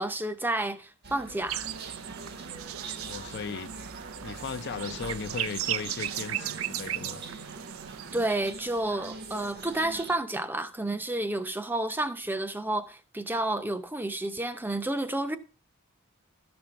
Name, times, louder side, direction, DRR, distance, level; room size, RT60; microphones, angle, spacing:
voice 1, 0.0-1.7 8.1-15.4, right 1 dB, 10° right, 0.6 m, -30 dB
sound 1, 1.0-10.2, right 3 dB, 50° right, 1.0 m, -43 dB
sound 2, 1.5-8.3, right 12 dB, 85° right, 0.5 m, -36 dB
voice 2, 3.0-3.7 4.2-7.2, left 5 dB, 55° left, 0.5 m, -37 dB
12.5 x 5.3 x 5.7 m
head